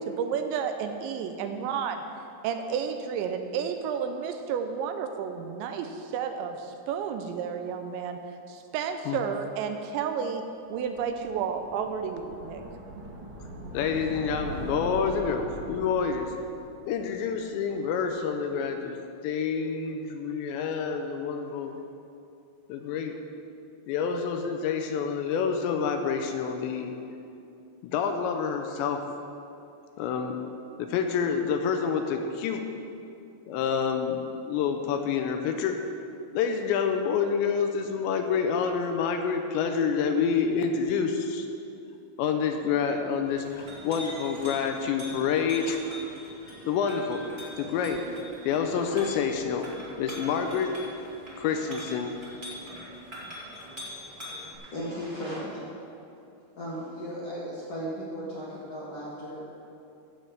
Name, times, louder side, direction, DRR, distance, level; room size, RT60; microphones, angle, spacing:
voice 1, 0.1-2.0 2.4-8.2 8.5-12.6, right 7 dB, 85° right, 7 dB, 2.8 m, -31 dB
sound 1, 10.8-17.9, equal, 55° right, 2.3 m, -41 dB
voice 2, 13.7-16.3 16.9-19.0 19.2-21.8 22.7-23.2 23.9-26.9 27.8-29.0 30.0-30.4 30.8-32.7 33.5-35.8 36.3-41.5 42.2-45.8 46.6-47.3 47.6-48.0 48.4-49.7 50.0-50.8 51.4-52.1, left 6 dB, 80° left, 5 dB, 2.8 m, -28 dB
Chink clink, 43.2-54.5, equal, 20° right, 1.2 m, -42 dB
voice 3, 54.1-55.9 56.6-59.4, equal, 55° left, -7 dB, 1.8 m, -36 dB
15.0 x 5.3 x 7.3 m, 2.6 s
omnidirectional pair, 5.4 m